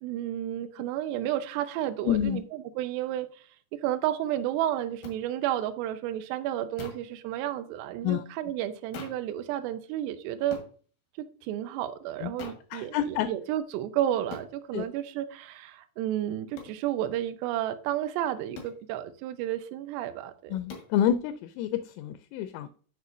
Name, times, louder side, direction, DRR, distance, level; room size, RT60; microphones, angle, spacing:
voice 1, 0.0-3.4 3.7-10.6 11.4-20.5, right 12 dB, 90° right, 2.4 m, -32 dB
voice 2, 2.0-2.4 8.0-8.2 12.2-12.3 12.7-13.3 14.7-14.8 20.5-22.7, left 10 dB, 85° left, 3.0 m, -28 dB
sound 1, 5.0-5.2 6.8-7.1 8.9-9.3 10.5-10.7 12.4-12.7 14.3-14.5 16.6-16.8 18.5-18.8 20.7-20.9, left 4 dB, 65° left, 2.2 m, -42 dB
8.2 x 6.2 x 2.6 m
omnidirectional pair, 5.7 m